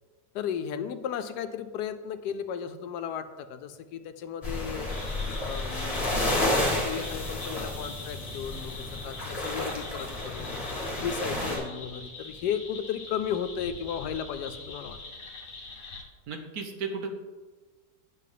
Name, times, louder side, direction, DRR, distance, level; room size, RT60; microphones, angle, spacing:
voice 1, 0.3-4.9 5.4-6.1 6.7-10.7 11.0-15.0, left 8 dB, 85° left, 10 dB, 1.2 m, -35 dB
sound 1, 4.4-11.6, left 1 dB, 20° left, 1.8 m, -31 dB
sound 2, 4.9-16.0, left 3 dB, 50° left, 1.6 m, -43 dB
voice 2, 16.3-17.1, right 5 dB, 65° right, 4 dB, 1.3 m, -34 dB
9.2 x 6.1 x 3.9 m, 1.3 s
omnidirectional pair, 1.7 m